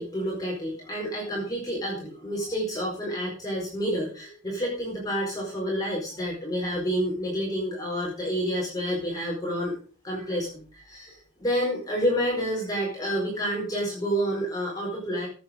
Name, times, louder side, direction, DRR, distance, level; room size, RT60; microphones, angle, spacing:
voice 1, 0.0-9.8 10.0-15.3, equal, 15° left, -4 dB, 4.6 m, -29 dB
14.0 x 8.8 x 5.2 m, 0.39 s
head